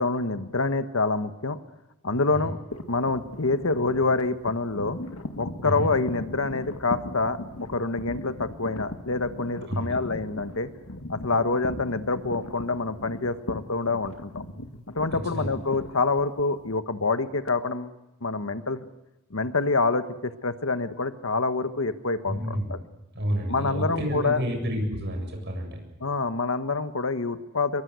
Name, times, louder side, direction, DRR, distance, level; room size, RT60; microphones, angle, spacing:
voice 1, 0.0-1.6 2.0-2.6 2.9-5.0 5.4-7.4 7.7-10.7 11.1-14.4 14.9-17.9 18.2-18.8 19.3-22.8 23.5-24.4 26.0-27.8, left 3 dB, 75° left, 10 dB, 1.4 m, -26 dB
sound 1, 2.7-16.8, left 1 dB, 90° left, 2.0 m, -39 dB
voice 2, 22.3-22.8 23.1-25.8, equal, 55° right, 3 dB, 7.6 m, -30 dB
25.0 x 22.5 x 8.2 m, 0.94 s
head